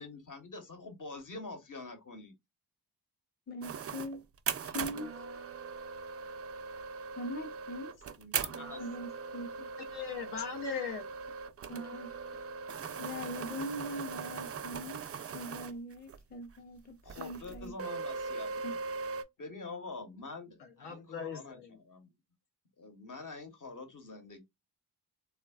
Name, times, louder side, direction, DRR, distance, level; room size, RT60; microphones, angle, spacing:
voice 1, 0.0-2.3 8.2-8.8 17.0-18.5 19.4-22.1 22.8-24.4, left 3 dB, 50° left, 1.0 m, -45 dB
voice 2, 3.5-4.2 4.6-5.1 7.2-7.9 8.8-9.7 11.7-12.1 13.0-15.0 15.3-17.7 18.6-18.8, left 1 dB, 25° left, 0.6 m, -41 dB
sound 1, 3.6-16.2 16.5-16.6 17.1-19.2, right 5 dB, 35° right, 0.4 m, -40 dB
voice 3, 9.9-11.0 20.6-21.8, left 6 dB, 75° left, 0.7 m, -39 dB
3.3 x 2.2 x 2.3 m
cardioid pair, 50°, 41 cm